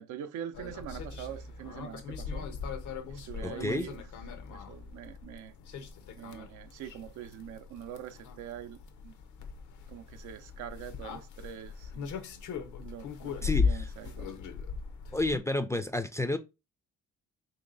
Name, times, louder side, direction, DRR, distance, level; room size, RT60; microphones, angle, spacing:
voice 1, 0.0-2.5 3.1-4.0 4.5-5.5 6.2-8.8 9.0-9.1 9.9-12.1 12.8-14.3, right 10 dB, 85° right, 0.6 m, -43 dB
sound 1, 0.5-15.4, left 5 dB, 75° left, 0.7 m, -38 dB
voice 2, 3.4-3.8 13.4-13.9 15.1-16.4, left 2 dB, 10° left, 0.3 m, -30 dB
3.1 x 2.8 x 3.8 m
cardioid pair, 90°, 30 cm